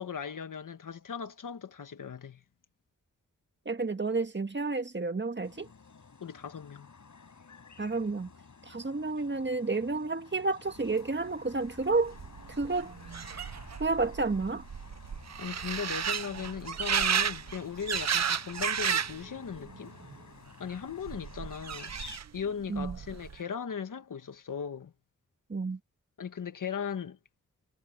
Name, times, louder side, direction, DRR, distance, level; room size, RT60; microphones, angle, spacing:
voice 1, 0.0-2.4 6.2-6.9 15.4-19.9 20.6-24.9 26.2-27.2, left 7 dB, 90° left, 1.7 m, -38 dB
voice 2, 3.6-5.7 7.8-8.3 8.7-12.1 12.6-12.9 13.8-14.6 22.7-23.0 25.5-25.8, right 3 dB, 35° right, 1.7 m, -30 dB
sound 1, 5.4-22.2, left 5 dB, 70° left, 6.4 m, -52 dB
sound 2, 11.7-11.8 11.9-19.2 19.6-20.2 21.1-22.4 22.7-23.4, right 7 dB, 60° right, 0.7 m, -33 dB
wide cardioid pair, 60°, 31 cm